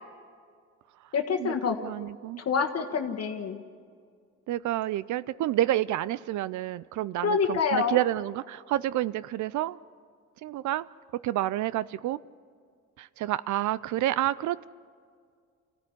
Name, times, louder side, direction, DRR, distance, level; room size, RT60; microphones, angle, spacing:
voice 1, 1.1-1.8 2.4-3.6 7.2-8.0, left 5 dB, 55° left, 4 dB, 1.5 m, -27 dB
voice 2, 1.8-2.4 4.5-9.8 10.4-10.9 11.2-12.2 13.0-14.7, right 14 dB, 75° right, 18 dB, 0.5 m, -29 dB
25.0 x 15.5 x 9.8 m, 2.1 s
cardioid pair, 90°, 30 cm